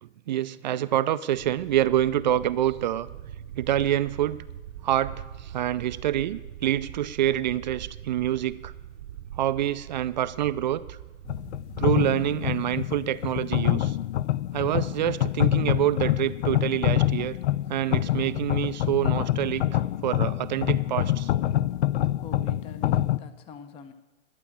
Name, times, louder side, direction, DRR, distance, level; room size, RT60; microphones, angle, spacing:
voice 1, 0.0-3.1 3.6-4.4 4.8-8.7 9.4-11.0 11.8-14.0 14.5-17.4 17.7-21.3, right 12 dB, 40° right, 15 dB, 0.4 m, -26 dB
sound 1, 1.3-12.0, right 10 dB, 65° right, 0.8 m, -42 dB
sound 2, 11.3-23.2, left 13 dB, 60° left, 0.5 m, -26 dB
voice 2, 21.5-23.9, left 6 dB, 15° left, 11 dB, 0.6 m, -45 dB
11.5 x 8.4 x 8.5 m, 1.1 s
hypercardioid pair, 135°, 38 cm